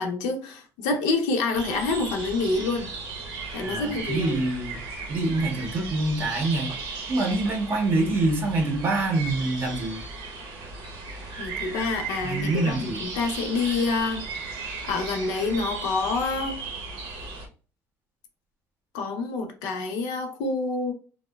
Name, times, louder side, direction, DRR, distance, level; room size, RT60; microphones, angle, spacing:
voice 1, 0.0-2.9 3.5-4.4 11.4-14.2 14.9-16.6 18.9-20.9, left 3 dB, 75° left, 0.6 m, -27 dB
sound 1, 1.5-17.5, right 3 dB, 80° right, 0.8 m, -36 dB
voice 2, 3.6-4.8 5.1-6.7 7.1-10.0 12.2-13.0, right 2 dB, 30° right, 0.6 m, -25 dB
2.7 x 2.1 x 2.2 m
cardioid pair, 180°, 7 cm